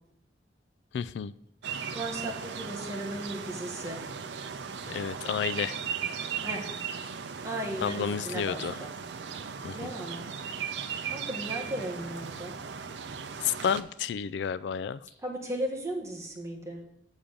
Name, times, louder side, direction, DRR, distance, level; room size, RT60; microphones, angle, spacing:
voice 1, 0.9-1.3 4.9-5.8 7.8-8.8 9.6-9.9 13.4-15.0, left 7 dB, 80° left, 0.3 m, -31 dB
sound 1, 1.6-13.8, right 6 dB, 85° right, 0.6 m, -37 dB
voice 2, 1.9-4.0 6.4-6.8 7.4-8.9 9.7-10.2 11.0-12.6 15.2-16.8, right 1 dB, 15° right, 1.5 m, -36 dB
7.3 x 7.1 x 5.1 m
head